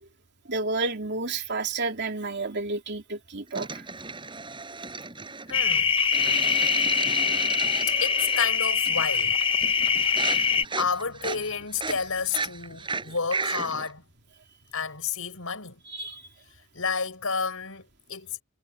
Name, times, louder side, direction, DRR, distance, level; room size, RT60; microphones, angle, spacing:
voice 1, 0.5-3.8 15.9-16.3, right 3 dB, 55° right, 3.2 m, -31 dB
sound 1, 3.6-5.6 6.1-8.6 8.9-9.3 9.6-13.9, right 4 dB, 25° right, 5.1 m, -34 dB
voice 2, 5.5-5.9 7.9-9.4 10.2-14.0 14.7-15.8 16.7-18.4, left 5 dB, 70° left, 6.2 m, -31 dB
sound 2, 5.5-10.6, left 6 dB, 25° left, 0.7 m, -24 dB
head